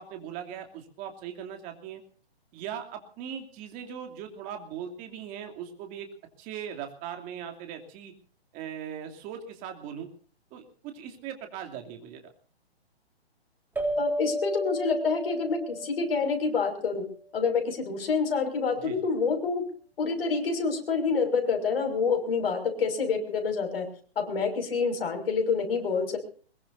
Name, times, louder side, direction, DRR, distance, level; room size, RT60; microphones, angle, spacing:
voice 1, 0.0-2.0 2.5-6.1 6.4-8.1 8.5-10.1 10.5-12.3 18.8-19.0, right 8 dB, 25° right, 4 dB, 2.8 m, -39 dB
sound 1, 13.8-16.7, equal, 5° right, 3.3 m, -32 dB
voice 2, 14.0-17.1 17.3-19.6 20.0-23.9 24.2-26.2, left 5 dB, 60° left, 5 dB, 6.0 m, -27 dB
23.0 x 22.0 x 2.7 m, 0.43 s
hypercardioid pair, 145°, 33 cm